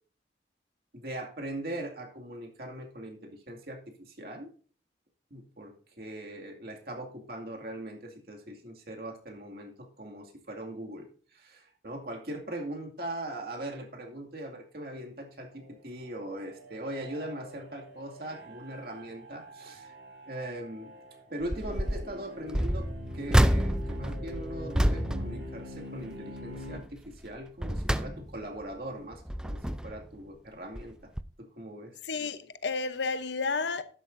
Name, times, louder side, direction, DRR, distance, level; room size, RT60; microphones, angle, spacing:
voice 1, 0.9-4.5 5.3-19.9 20.3-21.0 21.3-22.9 23.1-31.0 31.4-32.0, right 1 dB, 60° right, 2.3 m, -40 dB
sound 1, 15.5-26.8, equal, 80° right, 4.8 m, -45 dB
sound 2, 21.4-22.1 22.5-26.2 26.5-26.9 27.4-28.6 29.1-30.1 30.8-30.9 31.2-31.3, equal, 5° right, 0.4 m, -29 dB
voice 2, 32.0-33.8, left 4 dB, 85° left, 0.9 m, -31 dB
12.0 x 11.0 x 2.6 m
head